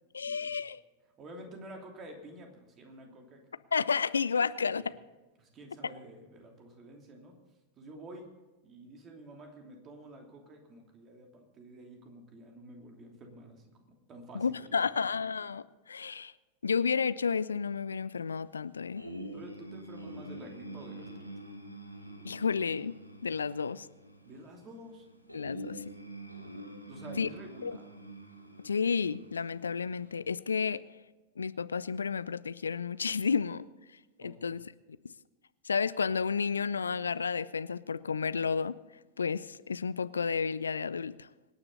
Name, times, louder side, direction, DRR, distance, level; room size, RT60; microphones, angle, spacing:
voice 1, 0.1-0.8 3.7-4.9 14.3-16.3 16.6-19.0 22.2-22.9 23.2-23.9 25.3-25.8 27.2-27.3 27.6-27.8 28.6-30.8 31.4-33.6 34.2-34.7 35.6-38.7 39.2-41.3, left 5 dB, 75° left, 17 dB, 0.4 m, -31 dB
voice 2, 1.2-3.4 4.4-5.0 5.4-7.3 7.8-8.3 8.6-13.6 14.1-15.1 19.3-21.3 24.2-25.1 26.8-27.9 34.2-34.5, right 1 dB, 30° right, 2 dB, 3.0 m, -49 dB
sound 1, 19.0-30.2, right 1 dB, 90° right, 1.6 m, -46 dB
25.0 x 9.9 x 4.1 m, 1.2 s
figure-of-eight pair, 90°, 0 cm